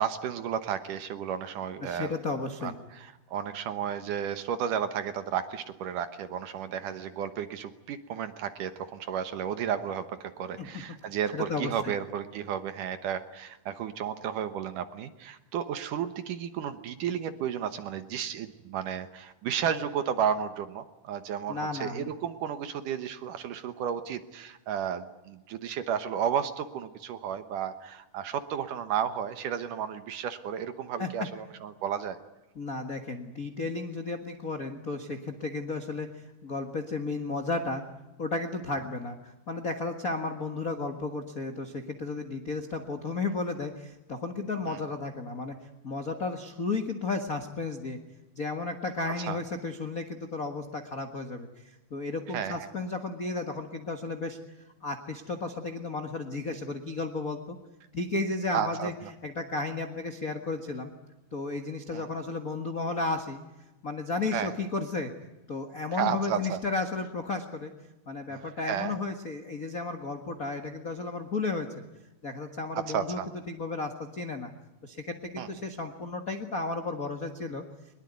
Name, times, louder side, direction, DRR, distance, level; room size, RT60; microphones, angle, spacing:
voice 1, 0.0-2.1 2.6-32.2 44.7-44.8 49.3-49.4 52.3-52.7 58.5-58.9 61.9-62.1 64.3-64.5 66.0-66.6 68.3-68.4 68.7-68.9 72.7-73.3 75.4-75.5, right 8 dB, 65° right, 10 dB, 2.4 m, -33 dB
voice 2, 1.8-2.7 10.6-10.7 11.3-11.9 21.5-22.1 31.0-31.1 32.5-36.1 36.4-37.8 38.2-45.5 45.8-48.0 48.3-54.4 54.8-57.6 57.9-58.9 59.2-60.9 61.3-63.4 63.8-65.1 65.5-67.7 68.1-71.7 72.2-74.5 74.8-77.6, left 3 dB, 50° left, 6 dB, 0.9 m, -33 dB
22.5 x 21.5 x 9.5 m, 0.97 s
omnidirectional pair, 4.5 m